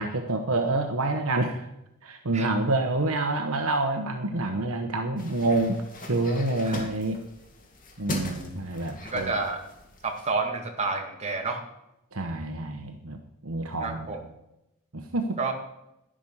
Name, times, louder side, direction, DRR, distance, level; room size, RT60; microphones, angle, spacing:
voice 1, 0.0-1.7 2.0-5.8 6.1-7.2 8.0-9.3 12.1-13.2 13.4-14.1 14.9-15.3, right 2 dB, 70° right, 5 dB, 1.2 m, -27 dB
sound 1, 5.2-10.3, left 2 dB, 40° left, 2.3 m, -39 dB
voice 2, 9.0-9.6 10.0-11.6 13.8-14.2 15.4-15.5, right 4 dB, 30° right, 2 dB, 2.1 m, -29 dB
11.5 x 11.5 x 5.7 m, 0.86 s
head